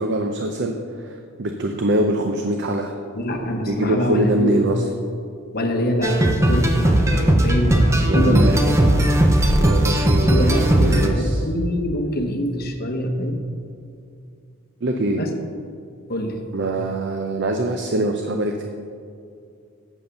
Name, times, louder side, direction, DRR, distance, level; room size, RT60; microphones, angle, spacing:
voice 1, 0.0-2.9 3.6-4.9 8.1-9.0 9.6-11.5 14.8-15.2 16.5-18.6, right 1 dB, 50° right, 4 dB, 0.6 m, -23 dB
voice 2, 3.2-4.5 5.5-7.1 7.4-8.5 10.2-13.4 15.2-15.3 16.1-16.4, equal, 45° left, 4 dB, 0.9 m, -24 dB
sound 1, 6.0-11.1, right 1 dB, 15° right, 0.6 m, -17 dB
8.0 x 7.1 x 6.7 m, 2.4 s
head